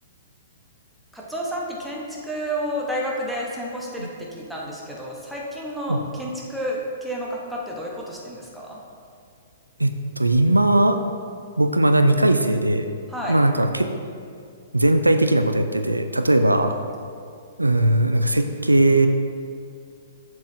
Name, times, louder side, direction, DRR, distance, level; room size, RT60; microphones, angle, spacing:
voice 1, 1.1-8.8 13.1-13.4, equal, ahead, -4 dB, 1.1 m, -30 dB
voice 2, 9.8-11.0 11.6-12.9 13.3-13.9 14.7-16.7 17.6-19.1, right 1 dB, 90° right, 8 dB, 0.4 m, -19 dB
7.4 x 7.3 x 2.8 m, 2.3 s
figure-of-eight pair, 115°, 0 cm